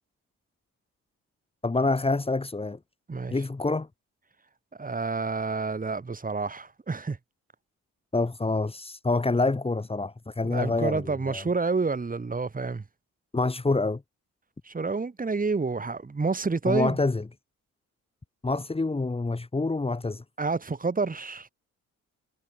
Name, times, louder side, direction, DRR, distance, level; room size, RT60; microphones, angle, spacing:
voice 1, 1.6-2.8 3.3-3.9 8.1-11.4 13.3-14.0 16.6-17.2 18.4-20.2, left 3 dB, 20° left, 3.4 m, -27 dB
voice 2, 4.8-7.2 10.4-12.8 14.6-17.0 20.4-21.5, right 4 dB, 30° right, 7.5 m, -29 dB
cardioid pair, 90°, 30 cm